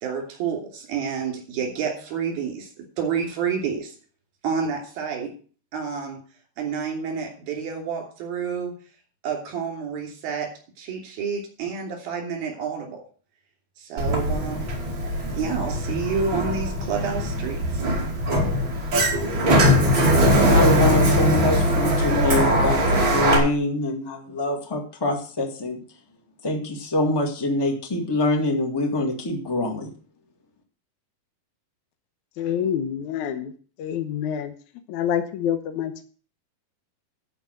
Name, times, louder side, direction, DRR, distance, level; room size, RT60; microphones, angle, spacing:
voice 1, 0.0-3.9 4.4-5.3 5.7-6.2 6.6-8.7 9.2-10.5 10.8-13.0 13.8-14.9 15.3-17.8, right 6 dB, 80° right, 2 dB, 4.8 m, -29 dB
Sliding door, 14.0-23.4, equal, 35° right, 3.1 m, -21 dB
voice 2, 20.4-25.8 26.4-29.9, left 2 dB, 20° left, 2 dB, 0.6 m, -25 dB
voice 3, 32.4-33.5 33.8-34.5 34.9-36.0, left 9 dB, 70° left, 8 dB, 2.1 m, -27 dB
12.0 x 5.1 x 7.9 m, 0.41 s
omnidirectional pair, 4.2 m